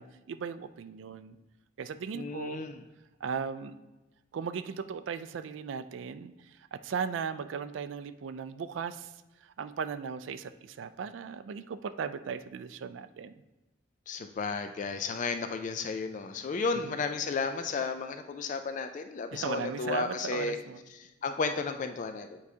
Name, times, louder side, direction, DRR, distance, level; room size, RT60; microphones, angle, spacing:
voice 1, 0.0-1.4 1.8-2.6 3.2-3.8 4.3-9.1 9.4-13.3 16.9-17.0 19.3-20.8, right 6 dB, 80° right, 12 dB, 0.3 m, -37 dB
voice 2, 2.1-2.8 14.1-20.6 21.0-22.4, left 4 dB, 40° left, 8 dB, 0.3 m, -33 dB
8.3 x 4.7 x 2.8 m, 1.1 s
head